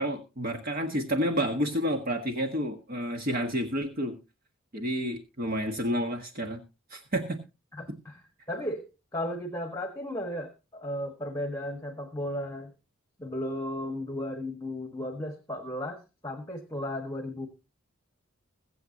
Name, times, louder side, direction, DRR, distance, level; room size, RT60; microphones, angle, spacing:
voice 1, 0.0-4.1 4.7-6.6 6.9-7.4, equal, 45° right, 4 dB, 1.6 m, -30 dB
voice 2, 7.7-8.9 9.1-12.7 13.2-17.5, left 1 dB, 15° left, 6 dB, 1.5 m, -35 dB
22.0 x 7.9 x 2.9 m, 0.28 s
head